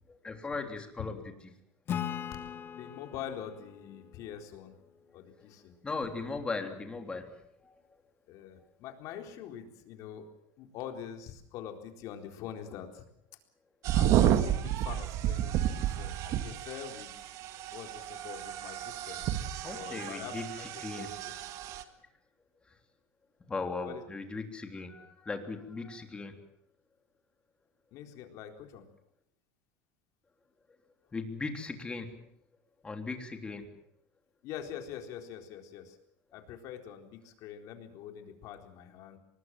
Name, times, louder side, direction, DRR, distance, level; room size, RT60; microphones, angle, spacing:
voice 1, 0.1-1.2 5.8-7.8 19.6-22.1 22.7-22.8 23.5-26.5 31.1-32.3 32.8-33.7, left 3 dB, 15° left, 5 dB, 3.3 m, -38 dB
Acoustic guitar / Strum, 1.9-5.3, left 9 dB, 35° left, 2.0 m, -40 dB
voice 2, 2.7-4.7 5.1-5.7 8.3-10.3 10.6-13.1 13.9-17.3 17.7-19.3 19.7-20.7 21.0-21.1 23.8-24.0 27.9-28.9 34.4-36.0 36.3-39.2, left 9 dB, 55° left, 5 dB, 4.1 m, -44 dB
sound 1, 13.8-21.8, right 11 dB, 50° right, 2.0 m, -31 dB
24.0 x 20.5 x 7.6 m, 0.72 s
supercardioid pair, 135°, 7 cm